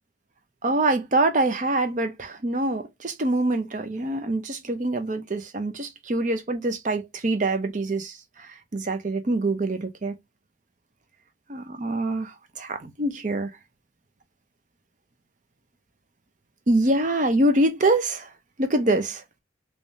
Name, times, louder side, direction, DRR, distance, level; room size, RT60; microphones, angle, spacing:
voice 1, 0.6-8.2 8.7-10.1 11.5-12.3 12.6-13.5 16.7-18.3 18.6-19.2, right 2 dB, 40° right, 0.6 m, -24 dB
3.4 x 3.2 x 2.7 m
head